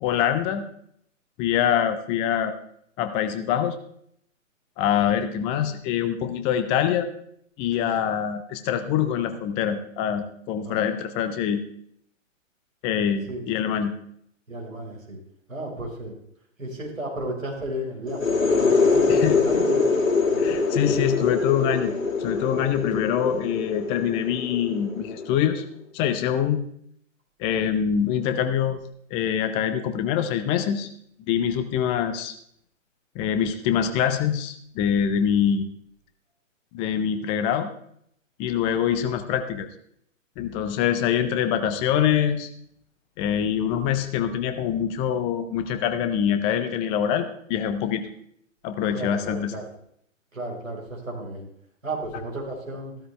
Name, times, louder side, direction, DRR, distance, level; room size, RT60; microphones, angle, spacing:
voice 1, 0.0-0.7 1.4-2.5 3.0-3.8 4.8-7.1 7.6-11.6 12.8-14.0 19.1-19.4 20.4-25.6 25.9-26.6 27.4-28.8 29.1-30.9 31.3-32.3 33.2-35.7 36.7-37.7 38.4-39.7 40.4-42.5 43.2-48.1 48.6-49.5, left 9 dB, 15° left, 9 dB, 0.5 m, -24 dB
voice 2, 14.5-15.2 15.5-16.2 16.6-19.9 20.3-20.6 48.9-49.6 50.3-51.5 51.8-52.9, right 1 dB, 80° right, -1 dB, 4.3 m, -34 dB
sound 1, 18.1-25.6, left 4 dB, 75° left, 2.5 m, -24 dB
15.0 x 12.5 x 3.2 m, 0.69 s
figure-of-eight pair, 120°, 39 cm